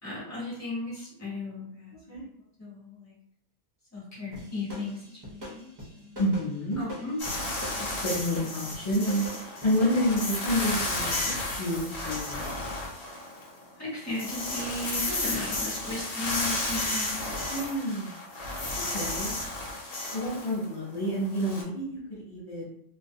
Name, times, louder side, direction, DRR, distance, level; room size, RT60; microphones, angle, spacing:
voice 1, 0.0-2.2 2.6-3.1 3.9-6.2 6.8-7.2 13.7-17.4, left 2 dB, 15° left, -7 dB, 1.0 m, -36 dB
sound 1, 4.3-10.1, equal, 35° right, 0.4 m, -42 dB
voice 2, 6.2-6.8 8.0-9.2 9.6-11.2 11.6-12.5 17.5-18.1 18.9-19.3 20.1-22.7, equal, 35° left, -10 dB, 0.5 m, -29 dB
sound 2, 7.2-13.6 13.9-21.6, left 2 dB, 75° left, 1.1 m, -33 dB
2.4 x 2.1 x 2.6 m, 0.73 s
omnidirectional pair, 1.3 m